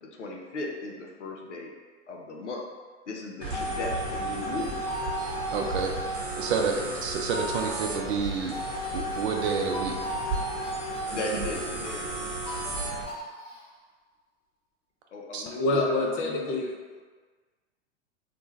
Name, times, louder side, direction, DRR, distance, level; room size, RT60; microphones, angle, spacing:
voice 1, 0.0-1.7 2.1-2.7 3.1-4.8 6.6-6.9 11.1-12.3 15.1-16.7, left 2 dB, 85° left, 0 dB, 0.5 m, -37 dB
sound 1, 3.4-13.0, right 1 dB, 35° right, 0.9 m, -33 dB
sound 2, 4.6-13.6, equal, 50° left, 0.9 m, -41 dB
voice 2, 5.5-5.9 6.4-8.5 8.9-10.0 15.3-15.4, right 5 dB, 65° right, 2 dB, 0.5 m, -29 dB
voice 3, 15.6-16.7, left 2 dB, 30° left, 0 dB, 0.4 m, -26 dB
2.5 x 2.1 x 3.1 m, 1.5 s
figure-of-eight pair, 95°, 35 cm